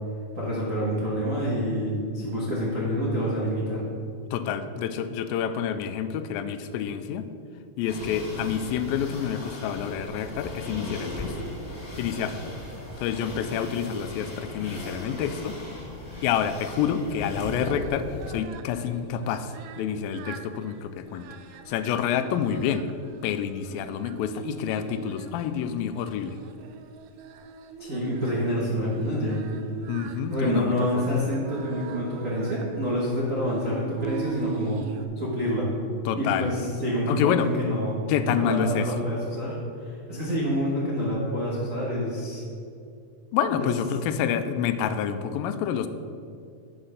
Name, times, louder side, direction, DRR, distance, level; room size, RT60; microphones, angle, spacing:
voice 1, 0.3-3.8 27.8-29.4 30.3-34.8 35.1-35.7 36.2-42.4 43.5-43.7, equal, 60° right, -6 dB, 0.8 m, -27 dB
voice 2, 4.3-7.3 7.8-11.4 12.0-12.4 13.0-15.6 16.2-21.3 21.7-22.9 23.2-26.4 29.9-31.1 36.1-36.5 37.1-37.5 38.1-38.9 43.3-45.9, left 8 dB, 85° left, 10 dB, 2.3 m, -28 dB
sound 1, 7.9-18.4, left 2 dB, 20° left, 2.1 m, -37 dB
Singing, 16.3-35.0, right 6 dB, 80° right, 2.1 m, -42 dB
8.9 x 5.8 x 6.5 m, 2.4 s
omnidirectional pair, 4.1 m